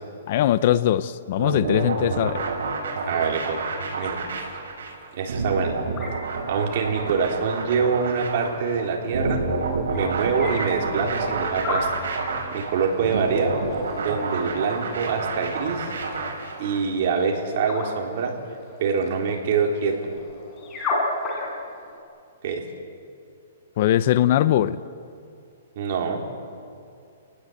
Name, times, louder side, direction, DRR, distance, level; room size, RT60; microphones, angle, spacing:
voice 1, 0.3-2.5 23.8-24.8, left 12 dB, 45° left, 15 dB, 0.7 m, -21 dB
sound 1, 1.4-16.8, right 4 dB, 75° right, 5.9 m, -29 dB
sound 2, 2.6-22.0, left 2 dB, 20° left, 5.7 m, -36 dB
voice 2, 3.0-3.7 4.0-4.2 5.1-5.8 6.5-9.4 9.9-11.9 12.5-13.6 14.0-15.9 16.6-18.3 18.8-20.1 22.4-22.6 25.8-26.2, right 5 dB, 45° right, 1 dB, 4.0 m, -25 dB
29.5 x 19.0 x 8.2 m, 2.4 s
hypercardioid pair, 165°, 0 cm